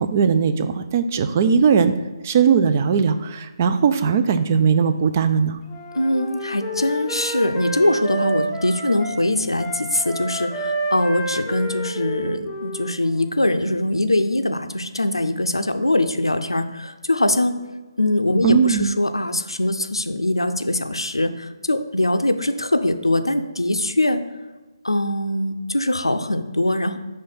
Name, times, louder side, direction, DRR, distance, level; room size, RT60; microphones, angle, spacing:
voice 1, 0.0-1.9 2.2-5.6 18.4-18.9, right 6 dB, 30° right, 10 dB, 0.3 m, -19 dB
Wind instrument woodwind instrument, 5.7-9.2 9.6-13.3, right 1 dB, 10° left, 0.7 m, -29 dB
voice 2, 5.9-17.6 18.0-24.2 24.8-27.0, left 1 dB, 80° left, 8 dB, 0.5 m, -22 dB
5.3 x 3.3 x 5.6 m, 1.2 s
figure-of-eight pair, 145°, 3 cm